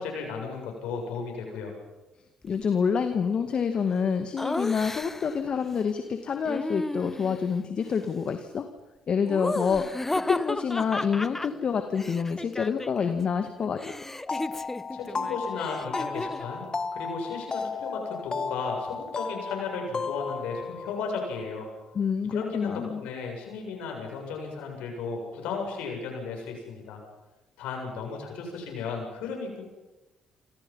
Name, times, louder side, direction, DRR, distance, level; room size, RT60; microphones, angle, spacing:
voice 1, 0.0-1.7 14.9-16.6 16.9-21.7 22.3-27.0 27.6-29.6, left 5 dB, 75° left, 2 dB, 7.6 m, -35 dB
voice 2, 2.4-8.7 9.1-9.9 10.1-13.9 21.9-23.0, left 6 dB, 50° left, 7 dB, 2.1 m, -27 dB
Laughter, 4.4-5.4 6.4-7.5 9.3-13.2 13.4-16.5, left 2 dB, 15° left, 0.8 m, -34 dB
sound 1, 14.3-21.7, left 4 dB, 35° left, 1.8 m, -34 dB
28.0 x 26.0 x 5.7 m, 1.1 s
hypercardioid pair, 50°, 2 cm